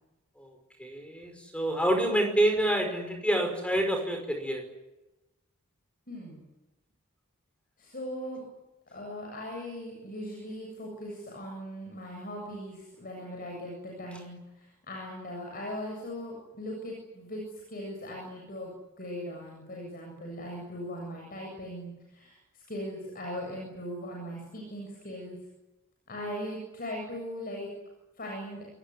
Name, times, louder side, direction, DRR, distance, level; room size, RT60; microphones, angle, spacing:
voice 1, 0.4-4.6, right 1 dB, 5° left, 5 dB, 5.3 m, -27 dB
voice 2, 6.1-6.4 7.8-8.4 8.9-25.4 26.1-27.7 28.2-28.7, equal, 40° left, 0 dB, 7.8 m, -39 dB
28.0 x 19.5 x 9.8 m, 1.0 s
head